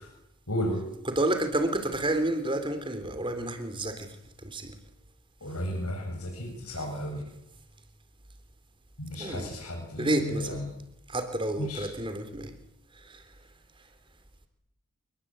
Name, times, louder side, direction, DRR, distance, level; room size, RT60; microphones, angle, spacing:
voice 1, 0.5-0.8 5.4-7.2 9.0-10.6 11.6-11.8, equal, 85° left, 7.3 m, -33 dB
voice 2, 1.0-4.2 4.4-4.8 9.1-9.5 10.0-10.6 11.1-12.5 12.9-13.2, right 1 dB, 20° right, 3.8 m, -30 dB
30.0 x 20.5 x 9.1 m
head